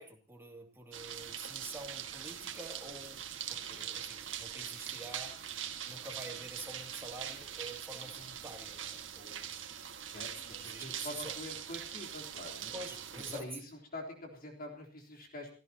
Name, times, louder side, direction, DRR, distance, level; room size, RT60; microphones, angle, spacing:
voice 1, 0.0-5.4 5.8-9.5 10.3-11.4 12.7-13.5, right 2 dB, 10° right, 1 dB, 2.7 m, -47 dB
sound 1, 0.9-13.4, right 9 dB, 70° right, 1.8 m, -42 dB
voice 2, 10.6-12.8 13.3-15.5, left 1 dB, 50° left, 0 dB, 3.8 m, -45 dB
29.5 x 14.5 x 2.9 m, 0.38 s
head